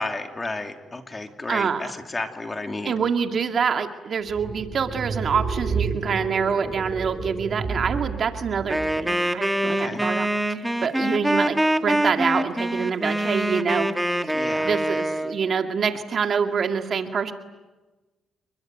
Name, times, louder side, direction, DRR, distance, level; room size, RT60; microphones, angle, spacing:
voice 1, 0.0-2.9 9.7-10.0 14.3-14.7, left 2 dB, 25° left, 5 dB, 3.0 m, -32 dB
voice 2, 1.5-1.8 2.8-13.9 14.2-14.4 14.6-17.3, right 6 dB, 50° right, 6 dB, 2.2 m, -26 dB
sound 1, 4.3-9.1, right 5 dB, 35° right, 4.8 m, -30 dB
Wind instrument woodwind instrument, 8.7-15.4, right 1 dB, 5° right, 1.7 m, -24 dB
30.0 x 21.5 x 9.3 m, 1.2 s
cardioid pair, 90°, 0 cm